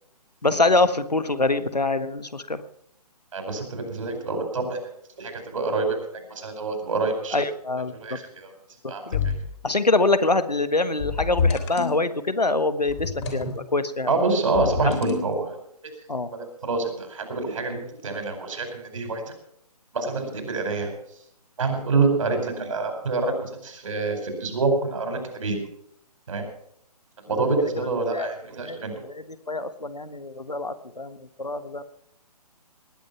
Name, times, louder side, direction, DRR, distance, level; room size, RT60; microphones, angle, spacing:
voice 1, 0.4-2.6 7.3-8.2 9.1-9.2 9.6-14.2 14.8-15.0 16.1-16.3 27.3-27.7 28.1-28.3 28.6-28.8 29.5-31.8, left 2 dB, 90° left, 12 dB, 1.4 m, -25 dB
voice 2, 3.3-4.8 5.2-6.0 6.3-7.4 8.0-8.5 8.9-9.4 14.1-15.5 16.3-19.3 19.9-20.9 21.6-25.6 26.3-26.4 27.3-29.0, right 3 dB, 55° right, 5 dB, 4.8 m, -26 dB
sound 1, 9.1-9.6 11.0-12.0 12.9-13.6 14.5-15.4, left 5 dB, 45° left, 3.3 m, -27 dB
19.5 x 9.4 x 5.8 m, 0.71 s
figure-of-eight pair, 140°, 20 cm